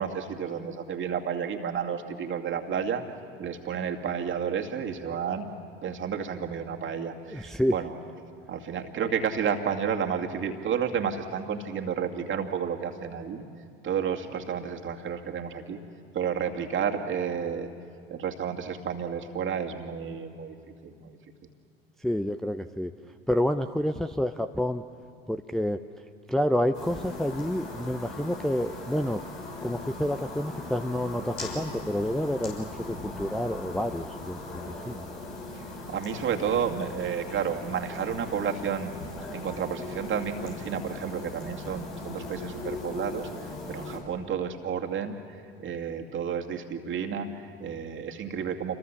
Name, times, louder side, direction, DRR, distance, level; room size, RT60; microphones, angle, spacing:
voice 1, 0.0-3.0 3.4-5.5 5.8-8.0 8.5-13.5 13.8-15.8 16.1-17.7 18.1-20.6 20.8-21.2 35.5-38.9 39.3-45.4 45.6-48.8, right 7 dB, 40° right, 3 dB, 2.4 m, -31 dB
voice 2, 7.3-7.8 22.0-22.9 23.3-24.8 25.3-25.9 26.3-29.2 29.6-35.0, equal, ahead, 6 dB, 0.7 m, -29 dB
sound 1, 26.7-44.0, left 2 dB, 85° left, 6.3 m, -39 dB
28.5 x 23.0 x 7.2 m, 2.4 s
figure-of-eight pair, 70°, 31 cm